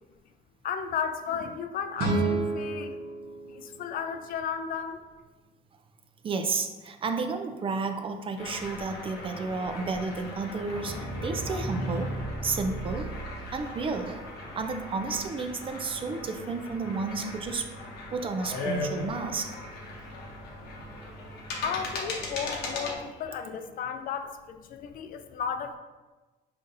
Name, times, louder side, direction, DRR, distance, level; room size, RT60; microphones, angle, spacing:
voice 1, 0.6-3.0 3.5-5.0 21.6-25.8, left 7 dB, 55° left, 8 dB, 0.4 m, -34 dB
sound 1, 2.0-5.0, right 3 dB, 70° right, 0.9 m, -31 dB
voice 2, 6.2-12.1 12.4-13.2 13.5-14.3 14.5-17.7 18.1-19.6, right 4 dB, 30° right, 6 dB, 0.4 m, -32 dB
sound 2, 8.4-23.0, left 2 dB, 80° left, 0.9 m, -39 dB
sound 3, 10.7-13.8, right 1 dB, 10° left, 0.6 m, -35 dB
5.4 x 2.5 x 2.6 m, 1.2 s
cardioid pair, 110°, 17 cm